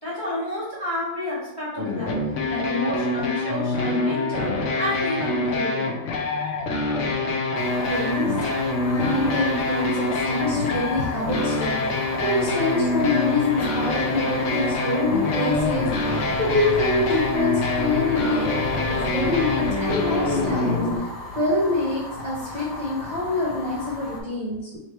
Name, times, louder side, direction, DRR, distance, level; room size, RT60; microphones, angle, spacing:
voice 1, 0.0-2.2 2.5-5.9, left 1 dB, 15° left, -7 dB, 1.2 m, -30 dB
sound 1, 1.8-21.0, left 2 dB, 65° left, 0.8 m, -25 dB
Fire, 7.5-24.2, left 2 dB, 45° left, 0.9 m, -36 dB
voice 2, 7.8-21.1 21.3-24.8, left 2 dB, 35° right, -7 dB, 0.8 m, -26 dB
sound 2, 15.5-20.6, left 1 dB, 80° left, 1.2 m, -35 dB
3.2 x 2.8 x 4.4 m, 0.89 s
omnidirectional pair, 1.8 m